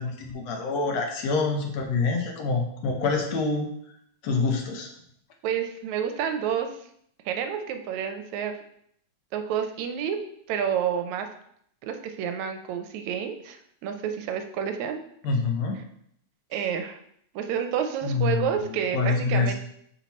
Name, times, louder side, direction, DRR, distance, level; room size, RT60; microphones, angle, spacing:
voice 1, 0.0-3.7 4.2-4.9 15.2-15.8 18.0-18.5 18.9-19.5, left 4 dB, 70° left, 2 dB, 1.9 m, -26 dB
voice 2, 5.4-6.9 7.3-8.5 9.3-10.2 10.5-11.3 11.8-15.0 16.5-17.0 17.3-19.5, right 8 dB, 80° right, 7 dB, 1.9 m, -29 dB
5.8 x 4.4 x 4.1 m, 0.69 s
omnidirectional pair, 3.3 m